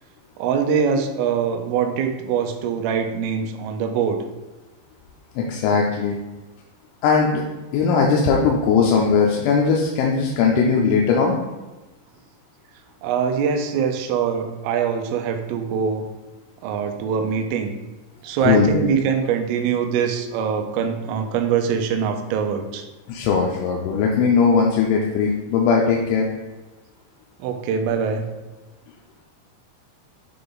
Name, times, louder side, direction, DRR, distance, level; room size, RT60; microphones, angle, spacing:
voice 1, 0.4-4.2 13.0-16.1 16.6-17.7 18.2-22.8 27.4-28.3, right 7 dB, 90° right, 6 dB, 3.3 m, -23 dB
voice 2, 5.4-6.2 7.0-7.5 7.7-11.3 18.5-18.9 23.1-26.3, left 5 dB, 80° left, -1 dB, 3.0 m, -19 dB
8.8 x 3.4 x 3.9 m, 1.1 s
omnidirectional pair, 5.6 m